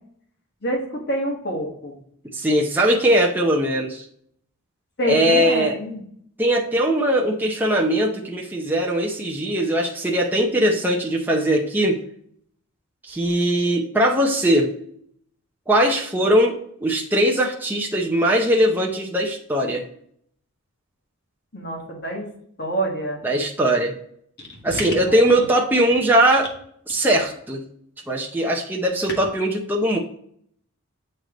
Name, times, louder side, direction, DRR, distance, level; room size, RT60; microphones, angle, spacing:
voice 1, 0.6-2.0 5.0-6.0 21.5-22.2 22.6-23.2 24.4-24.8 25.1-25.2, equal, 50° left, 0 dB, 1.6 m, -27 dB
voice 2, 2.3-4.1 5.1-5.8 6.4-12.0 13.1-14.7 15.7-19.9 23.2-24.0 24.6-26.5 26.9-27.6 28.1-30.0, right 1 dB, 10° right, -1 dB, 0.6 m, -20 dB
7.8 x 3.3 x 3.8 m, 0.65 s
head